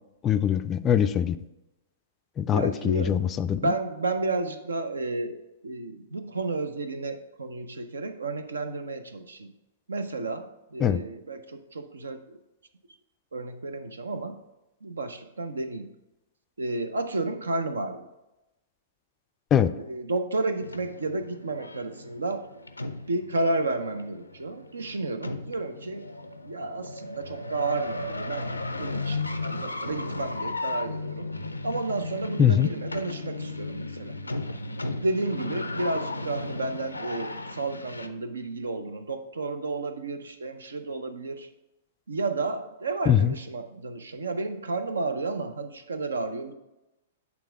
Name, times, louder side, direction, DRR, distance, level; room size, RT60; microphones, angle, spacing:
voice 1, 0.2-1.4 2.4-3.7 10.8-11.0 19.5-19.7 32.4-32.7 43.1-43.3, left 9 dB, 25° left, 12 dB, 0.3 m, -22 dB
voice 2, 2.5-9.5 9.9-12.4 13.3-14.4 14.8-15.9 16.6-18.1 19.8-22.5 23.1-26.1 26.4-31.3 31.6-34.1 35.0-41.5 42.1-46.5, right 2 dB, 75° right, 9 dB, 0.6 m, -32 dB
sound 1, 20.6-38.1, left 2 dB, 90° left, 0.5 m, -35 dB
8.6 x 3.5 x 4.9 m, 0.96 s
figure-of-eight pair, 110°, 0 cm